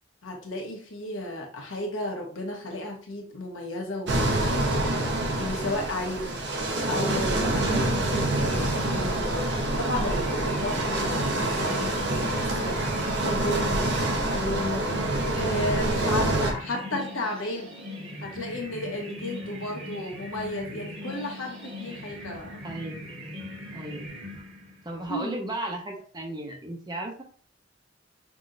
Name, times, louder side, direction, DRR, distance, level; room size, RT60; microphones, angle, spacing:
voice 1, 0.2-4.7 5.4-6.4 6.9-9.5 9.8-12.8 13.2-13.9 14.3-14.9 15.3-17.7 18.2-22.6 25.1-25.4, left 1 dB, 90° left, 1 dB, 1.2 m, -33 dB
sound 1, 4.1-16.5, right 2 dB, 60° right, 0.8 m, -26 dB
sound 2, 8.4-25.0, left 1 dB, 80° right, 2.0 m, -40 dB
voice 2, 22.6-23.0 23.7-24.1 24.8-27.2, right 1 dB, 20° right, 1 dB, 1.0 m, -35 dB
6.0 x 2.9 x 2.5 m, 0.43 s
head